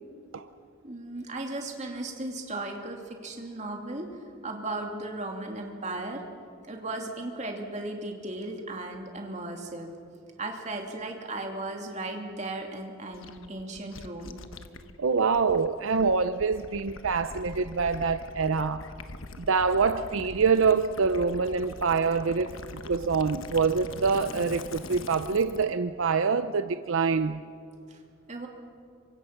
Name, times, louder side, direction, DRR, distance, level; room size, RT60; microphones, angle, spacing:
voice 1, 0.8-4.1 4.4-6.2 6.7-9.9 10.4-14.4 27.9-28.0 28.3-28.5, right 2 dB, 35° right, 2 dB, 2.7 m, -36 dB
Gurgling / Liquid, 13.1-25.7, left 3 dB, 75° left, 1.1 m, -43 dB
voice 2, 15.0-18.8 19.4-22.5 22.8-27.4, right 5 dB, 75° right, 11 dB, 0.6 m, -25 dB
27.5 x 24.5 x 5.9 m, 2.4 s
head